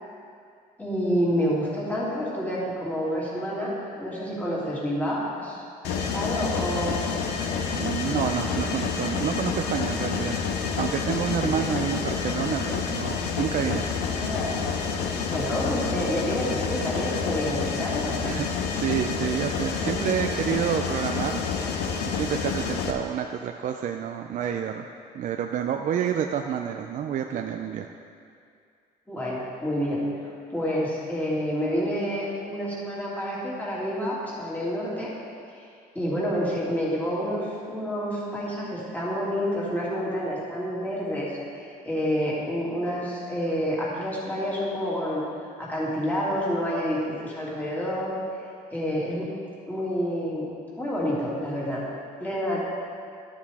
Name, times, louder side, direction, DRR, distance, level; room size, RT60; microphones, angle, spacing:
voice 1, 0.8-3.7 4.0-7.0 11.4-11.7 14.1-14.7 15.3-18.2 19.8-20.1 29.1-30.0 30.5-35.1 35.6-35.7 35.9-45.2 45.6-48.1 48.7-49.3 49.7-50.5 50.8-51.8 52.2-52.6, equal, 10° left, -7 dB, 2.5 m, -28 dB
Mechanisms, 5.8-22.9, left 6 dB, 80° left, 0.9 m, -28 dB
voice 2, 7.7-10.4 10.8-13.9 17.8-17.9 18.2-21.4 22.0-24.9 25.1-27.9, right 8 dB, 50° right, 4 dB, 0.4 m, -29 dB
12.0 x 7.3 x 3.5 m, 2.3 s
cardioid pair, 110°, 17 cm